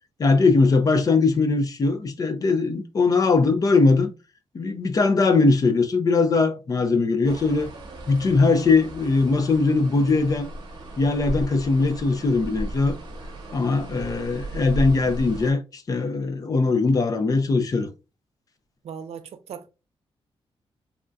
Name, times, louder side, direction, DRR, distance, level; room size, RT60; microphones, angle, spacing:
voice 1, 0.2-4.1 4.5-7.7 8.1-10.5 11.0-13.0 13.5-17.9, left 3 dB, 35° left, 0.5 m, -20 dB
sound 1, 7.2-15.5, right 1 dB, 45° right, 1.0 m, -35 dB
voice 2, 18.8-19.7, right 7 dB, 85° right, 0.5 m, -38 dB
3.5 x 2.6 x 2.2 m
wide cardioid pair, 150°, 10 cm